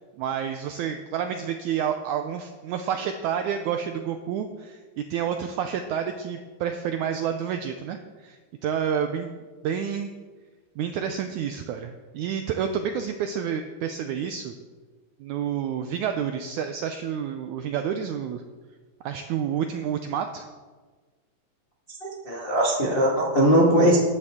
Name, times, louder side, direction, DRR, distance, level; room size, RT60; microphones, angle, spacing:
voice 1, 0.2-9.4 9.6-10.1 10.8-14.5 15.2-18.4 19.0-20.5, right 8 dB, 80° right, 6 dB, 1.7 m, -29 dB
voice 2, 22.0-24.0, right 1 dB, 35° left, -4 dB, 0.9 m, -20 dB
14.5 x 11.0 x 3.6 m, 1.4 s
omnidirectional pair, 4.0 m